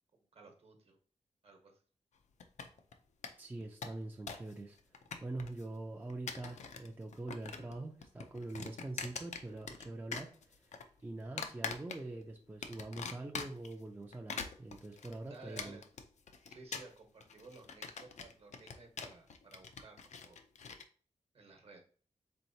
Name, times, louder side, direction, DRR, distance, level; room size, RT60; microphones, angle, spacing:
voice 1, 0.1-1.0 1.4-1.8 15.3-15.8 16.5-20.4 21.3-21.8, right 3 dB, 55° right, 3 dB, 1.1 m, -55 dB
sound 1, 2.4-2.9 3.2-3.3 3.6-4.5 4.8-5.6 6.1-6.9 7.1-7.8 8.0-9.9 10.1-10.8 11.4-12.2 12.6-13.7 14.1-20.8, left 5 dB, 75° left, 0.5 m, -43 dB
voice 2, 3.4-4.8 5.2-10.3 10.6-10.8 11.0-15.8, right 2 dB, 15° right, 2 dB, 0.4 m, -44 dB
4.4 x 3.8 x 2.7 m, 0.43 s
wide cardioid pair, 160°, 12 cm